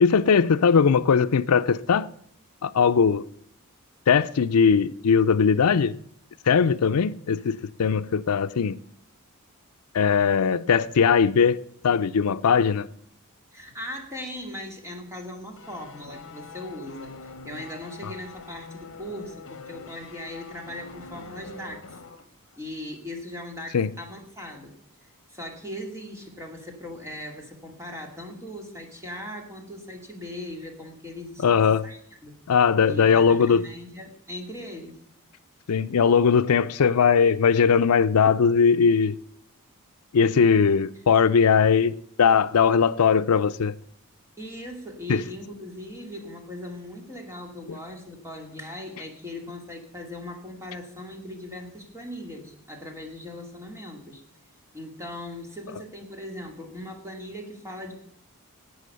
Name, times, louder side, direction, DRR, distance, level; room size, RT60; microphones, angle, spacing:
voice 1, 0.0-2.1 2.6-3.2 4.1-5.9 6.5-8.8 9.9-11.6 11.8-12.9 23.7-23.9 31.4-31.9 32.5-33.6 35.7-39.2 40.1-41.9 42.2-43.7 45.1-45.2, left 6 dB, 75° left, 0.5 m, -20 dB
voice 2, 13.5-22.0 22.6-24.7 25.3-32.3 32.9-35.0 44.4-54.2 54.7-57.9, left 1 dB, 15° right, 2.4 m, -39 dB
sound 1, 15.6-22.2 22.5-22.7, left 3 dB, 60° left, 1.3 m, -44 dB
11.5 x 8.3 x 6.8 m
head